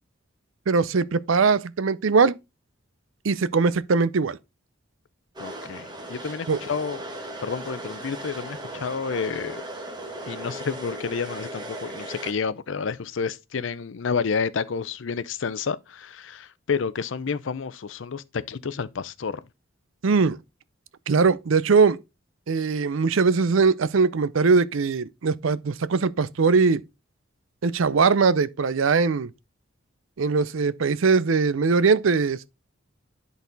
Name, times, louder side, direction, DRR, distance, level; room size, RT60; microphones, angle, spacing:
voice 1, 0.7-2.3 3.2-4.4 6.5-6.6 20.0-20.4 21.1-22.0 22.5-26.8 27.6-29.3 30.2-32.5, right 4 dB, 75° right, 0.5 m, -21 dB
voice 2, 5.4-7.0 7.4-9.6 10.3-19.4, left 5 dB, 65° left, 0.5 m, -30 dB
sound 1, 5.4-12.3, right 1 dB, 20° right, 1.3 m, -37 dB
10.5 x 4.1 x 3.9 m
head